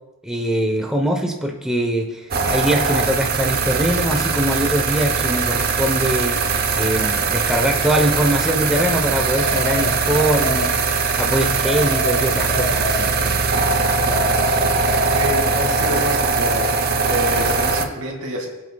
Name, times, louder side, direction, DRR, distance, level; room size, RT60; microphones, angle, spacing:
voice 1, 0.2-13.1, right 1 dB, 5° right, 1 dB, 1.0 m, -22 dB
sound 1, 2.3-17.9, right 4 dB, 45° right, 0.9 m, -21 dB
sound 2, 9.4-11.1 11.7-13.6 14.1-16.0, left 1 dB, 25° left, 2.6 m, -28 dB
voice 2, 15.2-16.7 17.0-18.5, right 1 dB, 75° right, 0 dB, 2.6 m, -27 dB
24.5 x 8.6 x 2.4 m, 1.1 s
head